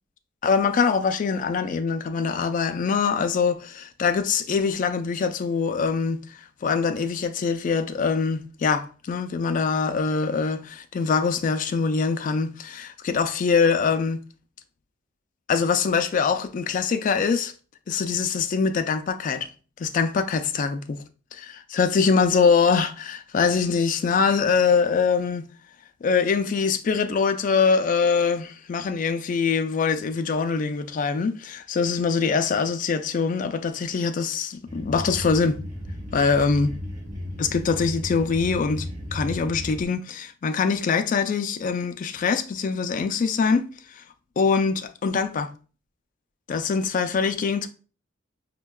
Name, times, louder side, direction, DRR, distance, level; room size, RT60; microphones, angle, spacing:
voice 1, 0.4-6.2 6.6-14.2 15.5-17.5 17.9-19.5 19.8-21.0 21.3-25.4 26.0-35.6 36.1-36.7 37.4-38.9 39.1-43.7 44.0-44.1 44.4-45.5 46.5-47.7, left 5 dB, 40° left, 0.3 m, -23 dB
sound 1, 34.7-39.8, left 1 dB, 40° right, 1.0 m, -35 dB
5.3 x 2.2 x 2.2 m
head